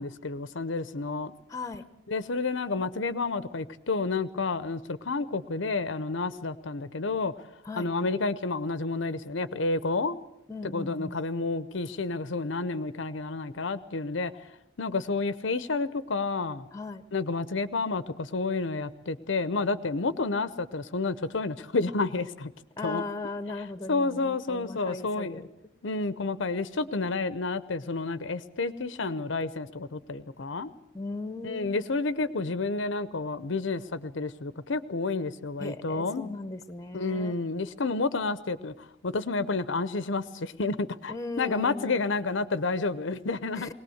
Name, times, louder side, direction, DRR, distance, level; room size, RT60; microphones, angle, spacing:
voice 1, 0.0-1.3 2.1-7.3 7.8-10.2 10.7-14.3 14.8-16.7 17.1-22.5 22.8-23.0 23.9-25.4 25.8-30.7 31.4-36.3 36.9-38.7 39.0-43.7, left 3 dB, 65° left, 15 dB, 0.7 m, -30 dB
voice 2, 1.5-1.8 7.6-7.9 10.5-11.2 16.7-17.1 22.8-25.5 30.9-31.7 35.6-37.4 41.1-42.0 43.5-43.7, left 3 dB, 15° left, 13 dB, 0.9 m, -37 dB
21.0 x 18.5 x 7.9 m, 0.84 s
head